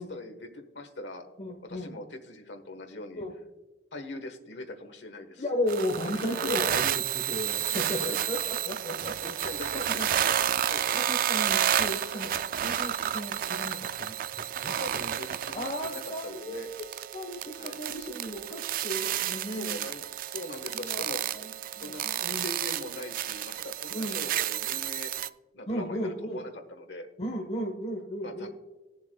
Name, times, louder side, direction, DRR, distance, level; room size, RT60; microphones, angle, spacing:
voice 1, 0.0-1.2 1.6-3.2 3.9-5.4 6.1-6.7 7.7-8.2 9.0-10.4 10.7-10.9 14.8-16.7 17.6-17.8 19.5-21.3 21.7-22.1 22.4-25.3 25.5-27.1 28.2-28.5, left 2 dB, 90° left, 6 dB, 1.3 m, -41 dB
voice 2, 1.4-1.9 3.2-3.3 5.4-9.3 9.9-10.1 10.9-15.2 15.5-19.8 20.7-21.0 21.3-22.5 23.9-24.2 25.7-26.4 27.2-28.5, equal, 40° left, -1 dB, 1.2 m, -35 dB
sound 1, 5.7-25.3, right 10 dB, 50° right, 0.3 m, -31 dB
20.0 x 7.0 x 2.3 m, 1.1 s
head